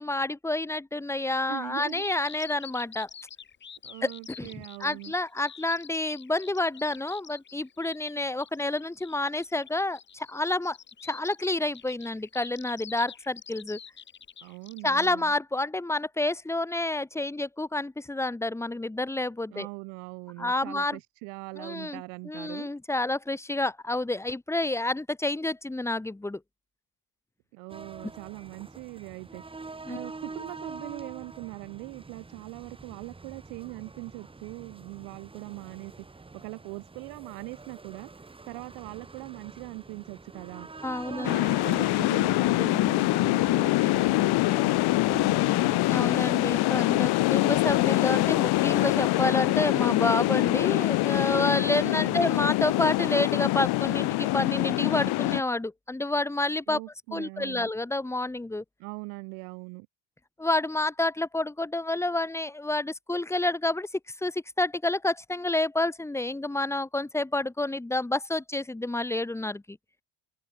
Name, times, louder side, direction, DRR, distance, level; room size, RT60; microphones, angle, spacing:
voice 1, 0.0-3.1 4.0-4.1 4.4-10.8 11.0-13.8 14.8-19.7 20.4-21.0 21.6-26.4 29.9-30.0 40.8-41.4 45.9-56.8 57.1-58.6 60.4-69.8, left 2 dB, 5° left, 3.0 m, -29 dB
voice 2, 1.5-2.1 3.8-5.1 14.4-15.3 19.5-22.7 27.5-29.4 29.9-38.1 38.4-40.7 41.1-45.8 51.8-52.3 56.7-57.7 58.8-59.9, right 36 dB, 90° right, 3.0 m, -41 dB
Bird vocalization bird call bird song, 1.9-14.9, left 7 dB, 20° left, 2.7 m, -47 dB
sound 1, 27.7-46.4, right 3 dB, 10° right, 7.0 m, -46 dB
North Atlantic Waves, 41.2-55.4, left 19 dB, 50° left, 1.5 m, -24 dB
cardioid pair, 175°, 49 cm